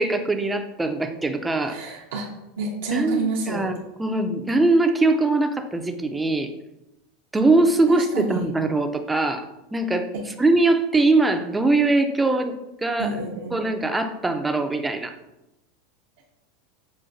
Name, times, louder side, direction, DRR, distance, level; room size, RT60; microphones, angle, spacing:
voice 1, 0.0-1.8 2.9-6.5 7.3-13.2 13.5-15.1, right 2 dB, 10° right, 6 dB, 0.4 m, -22 dB
voice 2, 1.7-2.3 2.6-3.7 7.3-7.6 7.9-8.4 13.0-13.6, right 3 dB, 85° right, -3 dB, 0.6 m, -29 dB
6.2 x 2.2 x 2.5 m, 0.91 s
supercardioid pair, 115°, 0 cm